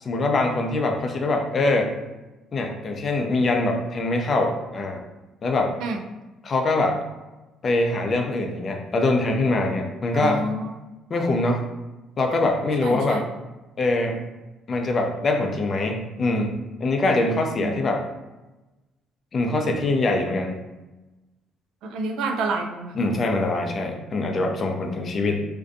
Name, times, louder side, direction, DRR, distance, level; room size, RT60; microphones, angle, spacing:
voice 1, 0.0-1.9 2.5-5.0 5.4-5.7 6.4-7.0 7.6-10.4 11.1-11.6 12.2-13.2 13.8-14.2 14.7-18.0 19.3-20.6 22.9-25.5, left 2 dB, 45° left, 3 dB, 0.4 m, -23 dB
voice 2, 10.1-10.7 12.8-13.2 17.6-17.8 21.8-22.9, right 2 dB, 75° right, 4 dB, 0.3 m, -28 dB
2.6 x 2.1 x 2.5 m, 1.1 s
supercardioid pair, 80°, 0 cm